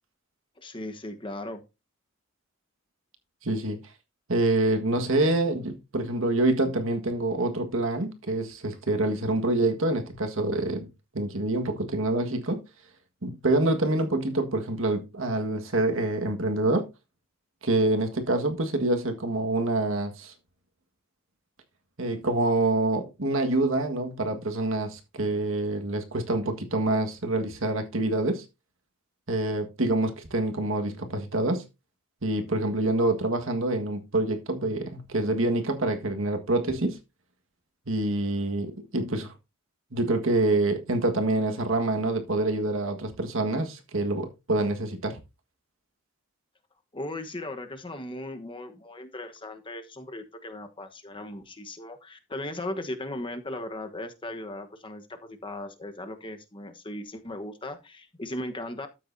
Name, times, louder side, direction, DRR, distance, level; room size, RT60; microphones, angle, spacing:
voice 1, 0.6-1.6 46.9-58.9, left 1 dB, 25° left, 1.2 m, -37 dB
voice 2, 3.4-3.8 4.3-10.9 11.1-12.6 13.2-16.9 17.6-20.3 22.0-28.4 29.3-31.6 32.2-37.0 37.9-39.3 39.9-45.2, right 2 dB, 65° right, 1.7 m, -26 dB
12.5 x 8.2 x 2.7 m
head